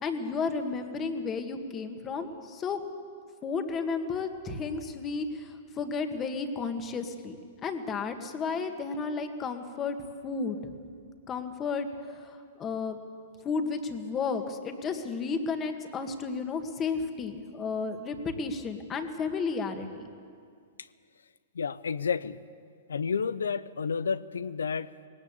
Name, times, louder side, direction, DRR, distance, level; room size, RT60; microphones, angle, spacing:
voice 1, 0.0-2.8 3.4-7.4 7.6-10.0 10.2-10.6 11.3-13.0 13.4-20.1, left 4 dB, 25° left, 6 dB, 1.9 m, -33 dB
voice 2, 21.5-22.4 22.9-25.1, left 6 dB, 85° left, 17 dB, 0.6 m, -31 dB
19.5 x 18.0 x 8.3 m, 2.2 s
hypercardioid pair, 120°, 0 cm